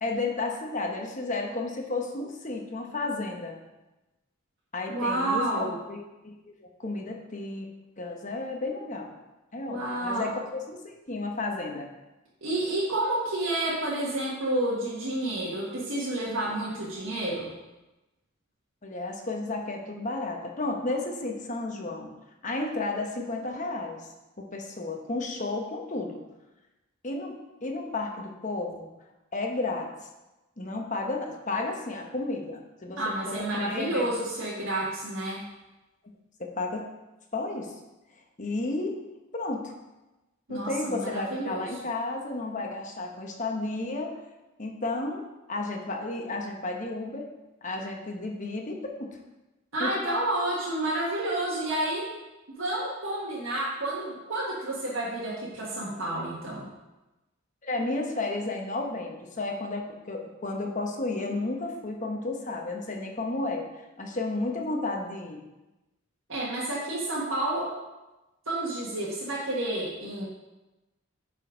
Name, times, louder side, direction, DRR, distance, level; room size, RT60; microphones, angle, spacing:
voice 1, 0.0-3.6 4.7-6.3 6.6-7.7 8.0-9.1 9.5-11.9 18.8-22.1 22.4-24.1 24.4-26.2 27.0-28.9 29.3-29.9 30.6-34.1 36.4-36.8 37.3-37.7 38.4-38.9 39.3-39.7 40.5-44.2 44.6-47.3 47.6-49.2 49.8-50.2 57.6-65.4, left 2 dB, 35° left, 2 dB, 1.0 m, -32 dB
voice 2, 4.9-5.7 9.7-10.3 12.4-17.5 33.0-35.4 40.5-41.6 49.7-52.0 52.6-56.7 66.3-67.7 68.5-70.2, right 1 dB, 70° right, -6 dB, 1.6 m, -30 dB
8.7 x 4.3 x 5.1 m, 1.0 s
head